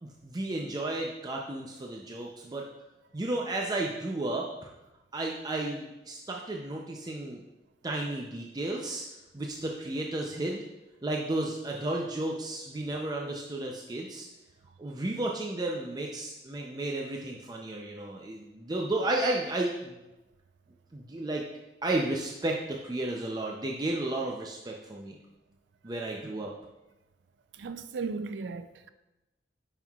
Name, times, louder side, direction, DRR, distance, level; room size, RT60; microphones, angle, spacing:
voice 1, 0.0-2.7 3.1-4.7 5.1-7.4 7.8-9.1 9.3-10.6 11.0-14.3 14.8-20.0 20.9-21.4 21.8-25.2 25.8-26.5, right 2 dB, 25° right, 0.4 m, -33 dB
voice 2, 27.6-28.9, right 4 dB, 85° right, 0.4 m, -36 dB
9.1 x 5.5 x 2.3 m
head